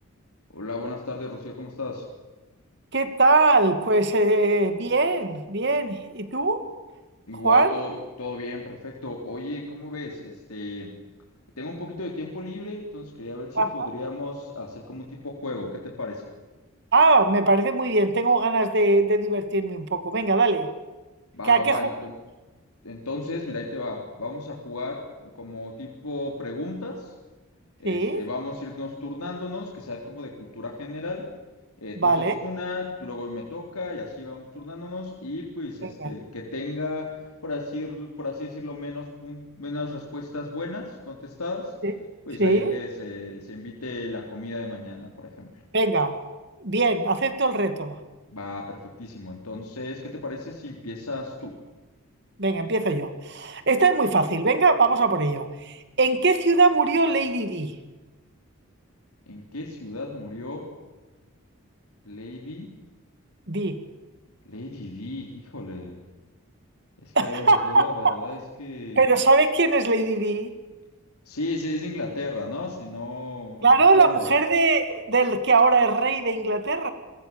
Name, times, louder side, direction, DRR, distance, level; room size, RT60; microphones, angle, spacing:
voice 1, 0.5-2.0 7.3-11.0 11.6-16.3 21.3-22.2 22.8-27.1 27.8-31.3 31.8-37.2 37.4-41.7 42.3-45.5 48.3-51.6 59.3-60.7 62.0-62.7 64.4-66.0 67.0-69.0 71.3-74.4, left 2 dB, 85° left, 0 dB, 3.8 m, -34 dB
voice 2, 2.9-6.6 7.4-7.8 13.6-13.9 16.9-20.7 21.5-21.8 27.8-28.2 32.0-32.3 36.0-36.1 41.8-41.9 42.4-42.7 45.7-46.1 46.6-48.0 52.4-57.7 63.5-63.8 67.2-68.1 69.0-70.5 73.6-76.9, right 3 dB, 50° right, 9 dB, 2.4 m, -21 dB
28.0 x 23.0 x 7.2 m, 1.2 s
head